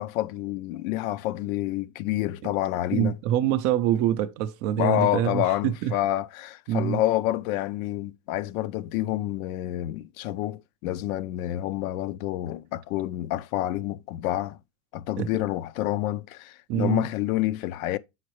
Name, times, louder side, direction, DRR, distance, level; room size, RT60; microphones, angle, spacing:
voice 1, 0.0-3.2 4.8-14.6 14.9-18.0, left 14 dB, 60° left, 0.6 m, -28 dB
voice 2, 2.9-5.9 6.7-7.0 15.2-15.3 16.7-17.1, right 11 dB, 35° right, 0.4 m, -25 dB
7.6 x 5.8 x 3.0 m
supercardioid pair, 155°, 48 cm